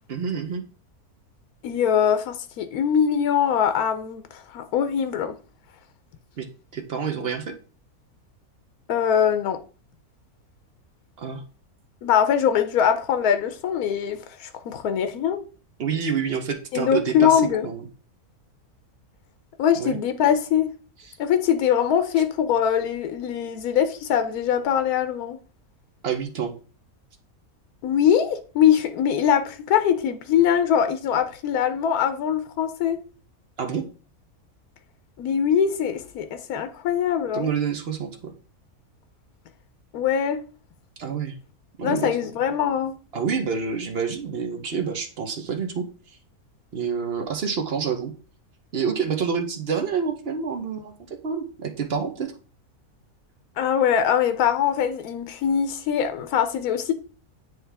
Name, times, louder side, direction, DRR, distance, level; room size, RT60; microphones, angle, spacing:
voice 1, 0.1-0.6 6.4-6.5 6.7-7.5 11.2-11.4 15.8-17.8 19.8-20.0 26.0-26.5 33.6-33.9 37.3-38.1 41.0-41.3 41.8-42.1 43.1-45.8 46.7-48.1 48.7-52.3, right 6 dB, 50° right, 0.9 m, -28 dB
voice 2, 1.6-5.4 8.9-9.6 12.0-15.4 16.7-17.7 19.6-20.7 21.2-25.4 27.8-33.0 35.2-37.5 39.9-40.4 41.8-43.0 53.6-56.9, left 8 dB, 85° left, 1.1 m, -22 dB
9.4 x 3.2 x 3.4 m
omnidirectional pair, 1.5 m